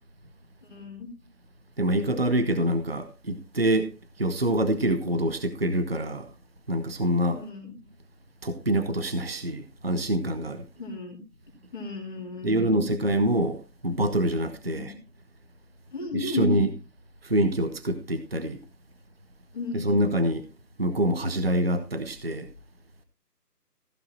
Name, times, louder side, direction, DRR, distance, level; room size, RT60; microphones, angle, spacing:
voice 1, 0.6-1.1 7.3-7.8 10.8-11.2 11.7-12.9 14.6-14.9 15.9-16.5 19.5-19.9, left 3 dB, 30° left, 3.6 m, -34 dB
voice 2, 1.8-3.9 4.2-6.3 6.7-7.4 8.4-10.6 12.4-14.9 16.1-16.7 17.2-18.6 19.7-20.5 20.8-22.5, right 1 dB, 40° right, 0.9 m, -25 dB
15.0 x 10.5 x 2.8 m
figure-of-eight pair, 175°, 48 cm